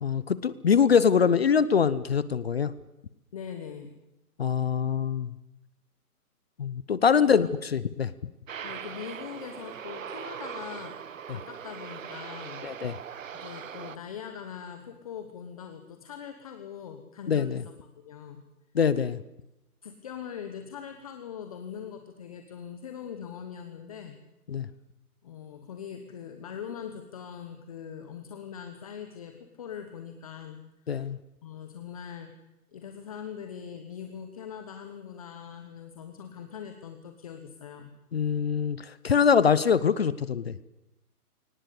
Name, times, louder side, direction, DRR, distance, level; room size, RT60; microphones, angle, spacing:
voice 1, 0.0-2.7 4.4-5.3 6.6-8.1 12.6-12.9 17.3-17.6 18.7-19.2 24.5-24.7 30.9-31.2 38.1-40.7, left 7 dB, 40° left, 16 dB, 0.8 m, -24 dB
voice 2, 3.3-4.0 7.2-7.4 8.6-11.0 11.3-12.6 13.3-17.7 18.0-18.4 19.8-24.2 25.2-31.0 31.4-32.3 32.7-37.9, left 8 dB, 25° left, 7 dB, 1.2 m, -41 dB
Aircraft, 8.5-14.0, right 8 dB, 55° right, 1.1 m, -40 dB
22.5 x 19.0 x 8.4 m, 0.92 s
hypercardioid pair, 165°, 46 cm